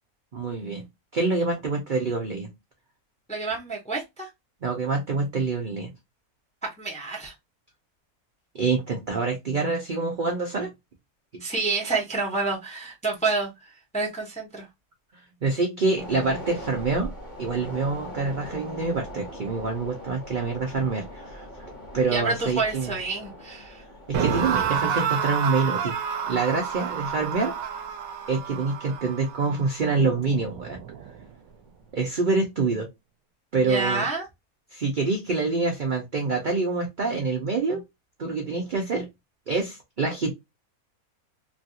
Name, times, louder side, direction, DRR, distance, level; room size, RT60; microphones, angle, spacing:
voice 1, 0.3-0.8 1.1-2.5 4.6-5.9 8.5-10.7 11.3-11.4 15.4-17.1 17.4-21.5 21.9-22.9 24.1-26.0 26.3-27.5 28.3-30.8 31.9-32.9 33.5-34.1 34.7-37.8 38.2-39.1 39.5-40.3, right 4 dB, 50° right, 0.6 m, -26 dB
voice 2, 3.3-4.3 6.6-7.3 11.4-14.7 22.1-23.8 33.6-34.2, right 3 dB, 5° left, 0.6 m, -28 dB
sound 1, 15.9-30.5 30.9-31.0, left 1 dB, 35° left, 1.0 m, -42 dB
sound 2, 24.1-31.3, right 8 dB, 75° right, 1.0 m, -30 dB
3.2 x 2.3 x 2.7 m
omnidirectional pair, 1.6 m